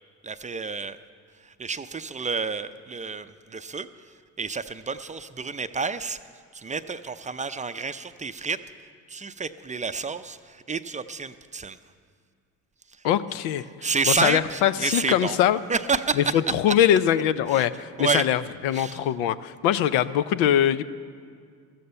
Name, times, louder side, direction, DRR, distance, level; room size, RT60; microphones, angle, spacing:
voice 1, 0.2-1.0 1.4-3.9 4.4-6.2 6.5-8.6 9.1-11.8 13.8-15.4 15.7-16.4 17.5-17.6 18.0-18.3 18.7-19.0, right 5 dB, 20° right, 11 dB, 0.5 m, -29 dB
voice 2, 13.0-13.6 14.1-15.6 16.2-20.8, left 10 dB, 85° left, 14 dB, 0.6 m, -22 dB
14.0 x 14.0 x 5.5 m, 2.2 s
supercardioid pair, 75°, 39 cm